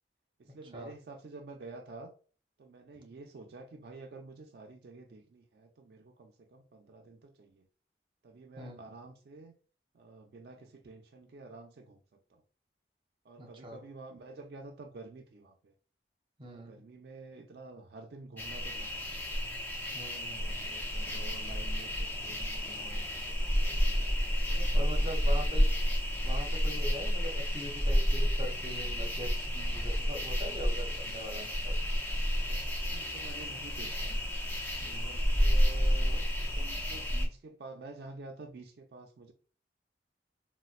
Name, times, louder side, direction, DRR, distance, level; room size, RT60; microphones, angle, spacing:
voice 1, 0.4-2.1 2.6-7.7 8.2-9.5 9.9-12.4 13.2-15.7 16.4-19.1 20.4-25.6 29.7-30.0 32.4-34.2 35.0-36.3 36.5-39.3, right 3 dB, 60° right, 0.3 m, -50 dB
voice 2, 8.6-8.9 13.4-13.8 16.4-16.8 19.9-20.6 24.7-25.7 26.2-31.7 34.8-35.2, equal, 30° right, 0.7 m, -42 dB
sound 1, 18.4-37.3, equal, 10° left, 0.4 m, -30 dB
4.0 x 2.1 x 2.4 m
head